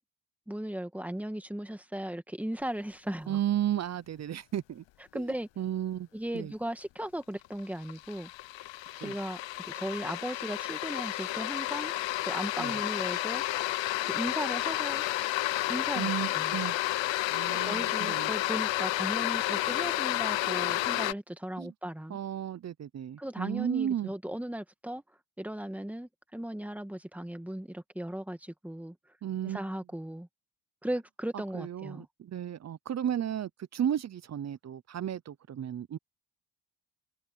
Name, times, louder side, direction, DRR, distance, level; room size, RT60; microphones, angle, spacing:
voice 1, 0.5-3.4 5.1-5.5 6.1-8.3 9.0-11.9 12.3-13.4 14.0-15.0 15.7-16.6 17.6-22.2 23.2-25.0 25.4-28.9 29.4-30.3 30.8-32.1, right 1 dB, 5° right, 1.8 m, -37 dB
voice 2, 3.3-4.8 5.1-5.2 5.6-6.1 6.3-6.5 9.0-9.1 12.6-12.7 16.0-16.8 17.3-18.3 21.6-21.7 22.1-24.1 29.2-29.6 31.3-36.0, right 10 dB, 40° right, 0.6 m, -33 dB
sound 1, 7.0-7.1 7.4-21.1, left 16 dB, 85° left, 0.8 m, -31 dB
cardioid pair, 125°, 43 cm